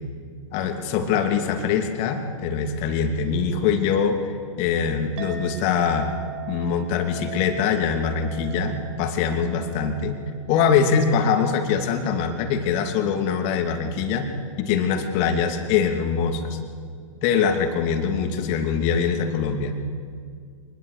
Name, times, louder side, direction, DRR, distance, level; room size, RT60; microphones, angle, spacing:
voice 1, 0.5-6.1 6.5-10.2 10.5-14.3 14.6-16.6 17.2-19.7, left 6 dB, 35° left, 6 dB, 2.7 m, -23 dB
Chink clink, 5.2-13.9, right 11 dB, 35° right, 4.5 m, -42 dB
24.0 x 21.0 x 6.7 m, 2.1 s
figure-of-eight pair, 110°, 17 cm